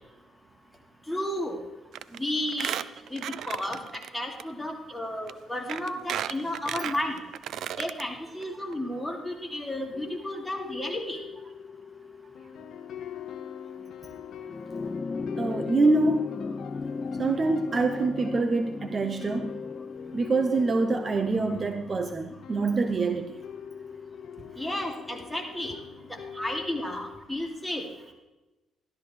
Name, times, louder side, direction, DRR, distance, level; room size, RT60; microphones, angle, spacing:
voice 1, 1.1-1.6 2.1-2.8 3.1-7.2 7.8-11.2 24.6-25.7 26.4-27.9, left 1 dB, 5° left, 0 dB, 2.6 m, -32 dB
Squeak, 1.9-2.2 2.5-4.1 4.4-4.5 5.3-5.4 5.7-8.0 8.4-8.5 8.7-8.8, right 10 dB, 75° right, 0.4 m, -34 dB
voice 2, 8.0-8.6 15.4-16.3 17.2-19.6 20.1-23.3 25.7-25.8, right 3 dB, 35° right, 7 dB, 0.8 m, -26 dB
sound 1, 9.1-27.2, left 8 dB, 75° left, 0.7 m, -43 dB
sound 2, 14.4-23.1 24.3-24.4, left 4 dB, 30° left, 0.3 m, -37 dB
13.5 x 13.0 x 3.3 m, 1.1 s
cardioid pair, 90°, 0 cm